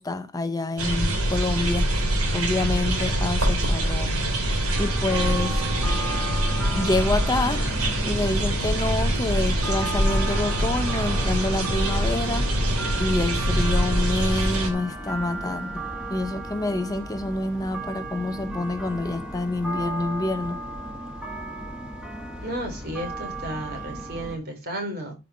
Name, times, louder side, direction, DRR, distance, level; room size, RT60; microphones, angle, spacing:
voice 1, 0.0-4.1 4.8-5.6 6.7-12.7 13.0-20.6, left 2 dB, 15° left, 0.6 m, -27 dB
sound 1, 0.8-14.7, right 1 dB, 85° right, 2.8 m, -24 dB
sound 2, 4.7-24.4, right 1 dB, 5° right, 1.8 m, -35 dB
voice 2, 22.4-25.2, right 1 dB, 50° right, 3.6 m, -33 dB
13.0 x 5.4 x 4.2 m
head